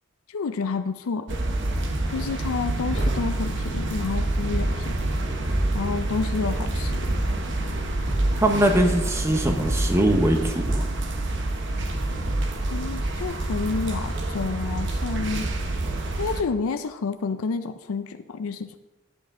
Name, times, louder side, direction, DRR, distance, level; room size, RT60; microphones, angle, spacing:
voice 1, 0.3-1.4 2.1-5.0 5.7-7.1 12.7-15.5 16.2-18.8, left 4 dB, 85° left, 9 dB, 0.5 m, -29 dB
sound 1, 1.3-16.4, right 2 dB, 55° right, 0.9 m, -28 dB
sound 2, 2.9-3.5 4.1-5.2 5.5-6.1 6.7-8.7 9.2-10.3 10.7-11.3 11.8-13.2, right 1 dB, 40° right, 1.7 m, -29 dB
voice 2, 8.4-10.8, right 1 dB, 15° right, 4 dB, 0.9 m, -21 dB
10.5 x 8.7 x 3.7 m, 1.1 s
head